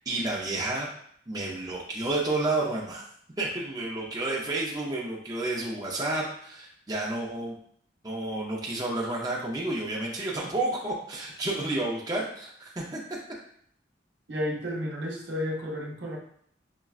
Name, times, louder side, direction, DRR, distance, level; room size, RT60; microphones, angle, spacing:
voice 1, 0.1-0.9 1.3-3.0 3.4-7.6 8.0-13.0, right 2 dB, 20° right, -4 dB, 0.5 m, -30 dB
voice 2, 14.3-16.2, equal, 65° right, -2 dB, 0.8 m, -32 dB
5.8 x 2.2 x 2.3 m, 0.65 s
head